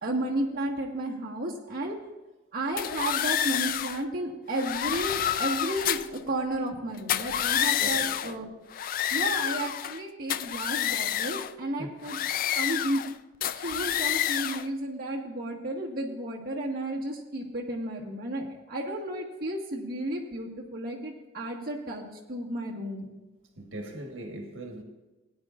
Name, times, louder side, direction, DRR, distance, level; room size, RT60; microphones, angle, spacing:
voice 1, 0.0-2.0 2.5-8.5 9.1-12.3 12.5-13.0 13.5-23.1, right 1 dB, 50° right, 1.7 m, -33 dB
sound 1, 2.8-4.0 4.5-6.2 7.0-8.3 8.7-10.0 10.3-11.5 12.0-13.1 13.4-14.7, left 10 dB, 45° left, 0.3 m, -29 dB
voice 2, 7.8-8.1 11.8-11.9 23.6-24.8, right 1 dB, 90° right, 1.4 m, -39 dB
18.0 x 9.8 x 2.5 m
head